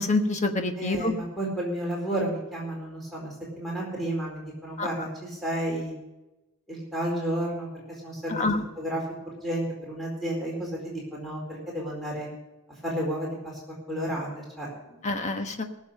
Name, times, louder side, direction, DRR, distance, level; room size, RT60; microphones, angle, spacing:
voice 1, 0.0-1.1 4.8-4.9 8.4-8.6 15.0-15.6, left 2 dB, 30° left, 6 dB, 1.2 m, -26 dB
voice 2, 0.8-5.9 6.7-8.4 8.8-9.0 9.4-12.3 12.8-13.6 13.9-15.0, right 1 dB, ahead, -4 dB, 4.3 m, -32 dB
18.5 x 7.2 x 6.8 m, 0.99 s
head